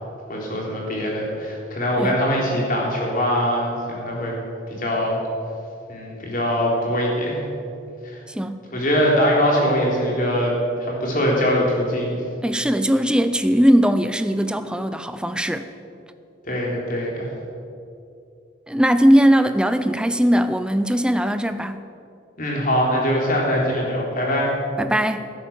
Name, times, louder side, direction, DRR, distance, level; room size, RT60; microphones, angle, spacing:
voice 1, 0.3-4.3 4.7-5.2 5.9-7.4 8.0-8.2 8.7-10.5 10.8-12.1 16.4-17.3 22.4-24.5, equal, 45° left, -3 dB, 3.7 m, -22 dB
voice 2, 8.3-8.6 12.4-15.7 18.7-21.8 24.8-25.3, equal, 5° right, 10 dB, 0.5 m, -19 dB
16.5 x 9.5 x 7.3 m, 2.6 s
head